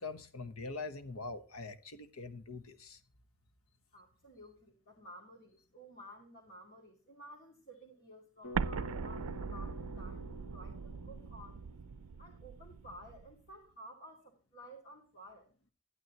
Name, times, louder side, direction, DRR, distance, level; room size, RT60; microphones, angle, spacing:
voice 1, 0.0-3.0, left 3 dB, 90° left, 1.2 m, -43 dB
voice 2, 3.9-11.6 12.2-15.5, equal, 45° left, 2.5 m, -54 dB
Bass guitar, 8.4-12.6, left 2 dB, 70° left, 2.5 m, -50 dB
Explosion, 8.5-13.3, right 6 dB, 90° right, 0.4 m, -40 dB
12.0 x 11.0 x 3.0 m
head